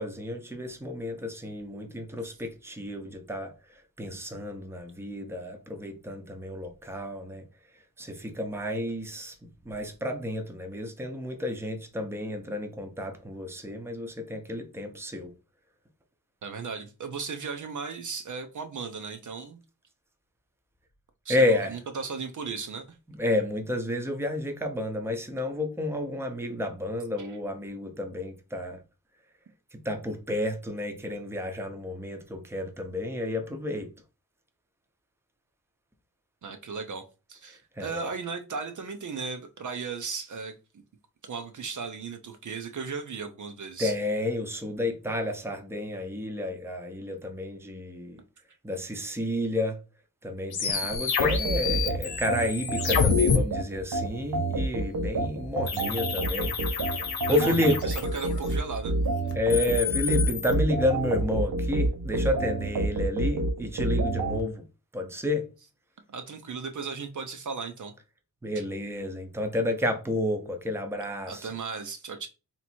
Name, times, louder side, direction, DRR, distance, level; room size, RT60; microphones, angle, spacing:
voice 1, 0.0-3.5 4.0-7.4 8.0-9.3 9.6-15.3 21.3-21.8 23.1-28.8 29.8-33.9 37.8-38.1 43.8-48.2 48.6-49.8 50.2-56.9 57.3-57.8 59.3-64.6 64.9-65.5 68.4-71.5, left 1 dB, 5° right, 0.7 m, -30 dB
voice 2, 16.4-19.6 21.2-23.0 27.2-27.4 36.4-37.0 37.3-40.5 41.2-43.9 57.3-58.9 66.1-67.9 68.6-68.7 71.3-72.3, right 5 dB, 55° right, 0.6 m, -36 dB
sound 1, 50.5-53.4 55.7-58.5 59.3-60.5, left 7 dB, 85° left, 1.0 m, -29 dB
sound 2, 51.2-64.4, right 2 dB, 80° right, 0.9 m, -28 dB
3.2 x 2.9 x 4.3 m
wide cardioid pair, 130°, 36 cm